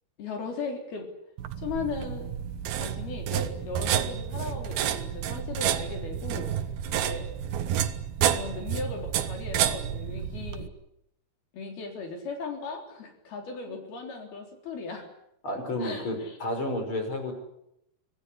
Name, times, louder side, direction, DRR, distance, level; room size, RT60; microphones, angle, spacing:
voice 1, 0.2-1.1 1.6-2.3 2.7-6.5 6.9-7.3 8.3-10.7 11.5-15.1 15.8-16.4, left 4 dB, 65° left, 3 dB, 5.6 m, -37 dB
sound 1, 1.4-10.7, right 10 dB, 70° right, 3.0 m, -30 dB
voice 2, 15.4-17.3, left 1 dB, 30° left, 5 dB, 6.3 m, -31 dB
26.0 x 18.5 x 9.9 m, 0.79 s
omnidirectional pair, 4.8 m